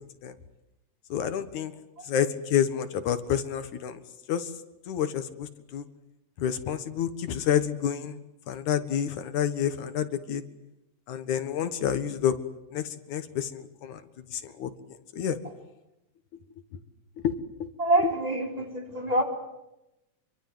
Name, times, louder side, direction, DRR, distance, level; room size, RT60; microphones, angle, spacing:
voice 1, 1.1-1.7 2.0-4.0 4.3-4.5 4.9-5.8 6.4-8.2 8.5-10.4 11.1-12.4 12.7-14.0 14.3-14.7 15.1-15.4 17.2-17.7, left 9 dB, 75° left, 11 dB, 2.9 m, -29 dB
voice 2, 17.8-19.2, right 1 dB, 10° right, 4 dB, 4.0 m, -26 dB
27.5 x 24.0 x 7.9 m, 0.91 s
omnidirectional pair, 3.5 m